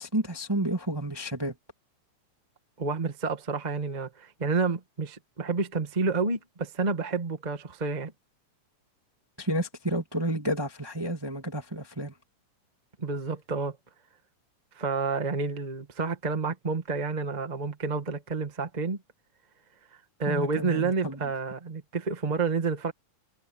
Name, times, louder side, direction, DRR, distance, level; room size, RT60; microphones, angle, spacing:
voice 1, 0.0-1.6 9.4-12.1 20.3-21.2, right 1 dB, 10° right, 1.9 m, -30 dB
voice 2, 2.8-8.1 13.0-13.8 14.7-19.0 20.2-22.9, right 4 dB, 25° right, 0.9 m, -29 dB
omnidirectional pair, 3.7 m